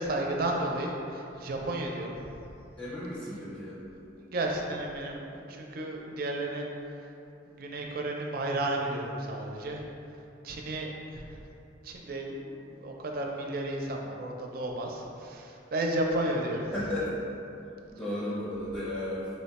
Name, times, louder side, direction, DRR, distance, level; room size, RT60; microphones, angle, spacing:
voice 1, 0.0-2.1 4.2-6.7 7.6-9.8 10.4-11.2 11.8-16.6, right 1 dB, 50° right, 0 dB, 0.4 m, -33 dB
voice 2, 2.8-3.8 16.7-17.1 17.9-19.4, left 1 dB, 10° left, -9 dB, 0.6 m, -34 dB
4.1 x 2.1 x 4.0 m, 2.8 s
head